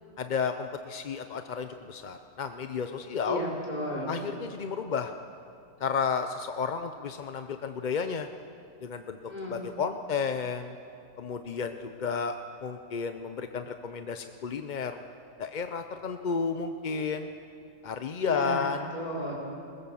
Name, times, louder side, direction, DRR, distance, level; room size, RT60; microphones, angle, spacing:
voice 1, 0.2-3.4 4.1-5.1 5.8-8.3 8.8-9.2 9.5-10.7 11.2-12.4 12.6-15.0 15.4-17.3 17.8-18.8, left 6 dB, 45° left, 7 dB, 0.6 m, -32 dB
voice 2, 3.2-4.1 9.3-9.6 18.2-19.3, equal, 30° left, -3 dB, 4.8 m, -34 dB
21.0 x 19.5 x 7.1 m, 2.5 s
omnidirectional pair, 1.5 m